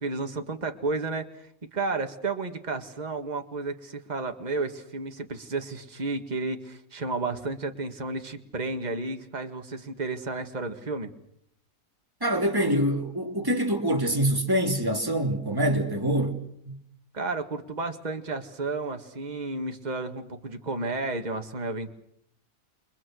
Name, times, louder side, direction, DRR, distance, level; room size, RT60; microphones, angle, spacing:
voice 1, 0.0-11.1 17.1-21.9, right 3 dB, 30° right, 1.9 m, -32 dB
voice 2, 12.2-16.4 16.7-16.8, right 1 dB, 15° right, 3.0 m, -25 dB
29.0 x 23.5 x 6.4 m
omnidirectional pair, 1.5 m